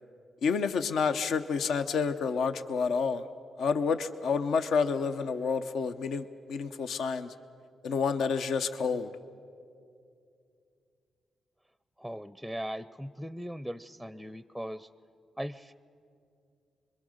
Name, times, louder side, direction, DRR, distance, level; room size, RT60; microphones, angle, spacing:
voice 1, 0.4-3.2 3.6-7.3 7.8-9.1, left 5 dB, 75° left, 9 dB, 0.7 m, -29 dB
voice 2, 12.0-14.9 15.4-15.7, equal, ahead, 14 dB, 0.5 m, -39 dB
26.5 x 22.0 x 6.5 m, 2.5 s
supercardioid pair, 55°, 0 cm